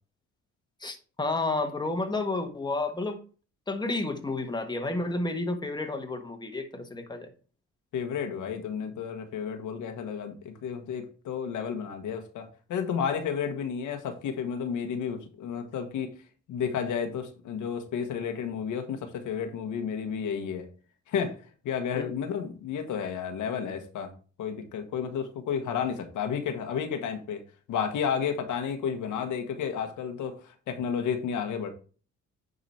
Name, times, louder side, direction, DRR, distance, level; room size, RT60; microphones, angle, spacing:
voice 1, 0.8-3.2 3.7-7.3 21.9-22.1, left 2 dB, 15° left, 1.3 m, -31 dB
voice 2, 7.9-16.1 16.5-20.7 21.1-21.3 21.6-24.1 24.4-27.4 27.7-31.7, left 7 dB, 80° left, 1.4 m, -32 dB
9.6 x 4.0 x 4.3 m
cardioid pair, 90°, 30 cm